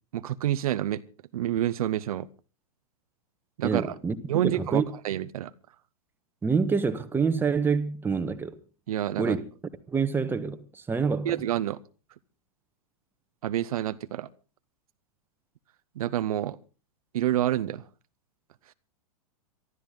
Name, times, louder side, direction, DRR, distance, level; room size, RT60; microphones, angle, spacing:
voice 1, 0.1-1.0 1.3-2.3 3.6-3.9 4.3-5.5 8.9-9.4 11.2-11.8 13.4-14.3 16.0-16.6 17.1-17.8, right 12 dB, 75° right, 0.9 m, -28 dB
voice 2, 3.6-4.8 6.4-8.5 9.2-9.4 9.9-11.4, right 5 dB, 10° right, 1.3 m, -27 dB
23.5 x 12.5 x 3.8 m
hypercardioid pair, 125°, 19 cm